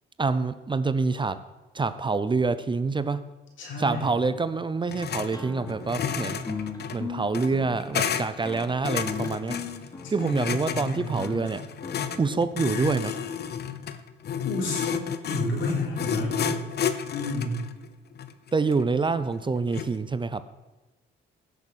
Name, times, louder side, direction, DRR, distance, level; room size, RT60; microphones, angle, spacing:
voice 1, 0.2-1.4 1.7-3.2 3.8-6.4 6.9-9.6 10.1-11.6 12.2-13.1 18.5-20.4, right 4 dB, 25° right, 13 dB, 0.6 m, -26 dB
voice 2, 3.6-4.2 10.0-11.2 14.4-15.0 15.3-16.6 17.1-17.6, left 1 dB, 75° left, -1 dB, 3.9 m, -31 dB
sound 1, 4.9-5.3 5.6-20.0, left 8 dB, 55° left, 0.8 m, -32 dB
sound 2, 5.3-12.7, left 4 dB, 20° left, 1.8 m, -38 dB
15.5 x 6.6 x 6.3 m, 1.1 s
cardioid pair, 90°, 20 cm